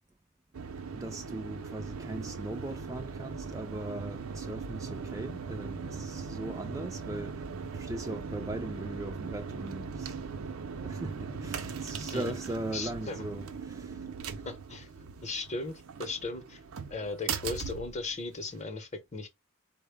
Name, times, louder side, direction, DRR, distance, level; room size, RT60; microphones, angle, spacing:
sound 1, 0.5-18.6, right 5 dB, 80° right, 0.5 m, -39 dB
voice 1, 0.9-7.5 7.7-10.2 10.7-14.0, right 2 dB, 15° right, 0.3 m, -39 dB
voice 2, 12.7-13.2 14.5-14.9 15.2-16.6 16.9-19.3, left 3 dB, 35° left, 0.8 m, -37 dB
4.3 x 2.1 x 3.4 m
head